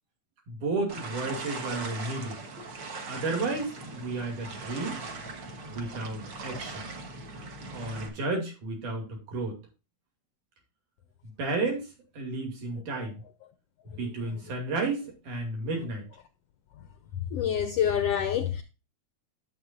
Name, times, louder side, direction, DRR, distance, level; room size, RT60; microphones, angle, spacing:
voice 1, 0.5-2.4 3.1-5.0 5.7-6.9 7.7-9.6 11.2-11.9 12.1-13.2 13.9-16.1, right 3 dB, 85° right, 4.1 m, -32 dB
sound 1, 0.9-8.1, right 3 dB, 50° right, 1.5 m, -40 dB
voice 2, 17.3-18.6, left 9 dB, 85° left, 1.4 m, -26 dB
11.0 x 7.5 x 2.5 m
omnidirectional pair, 3.5 m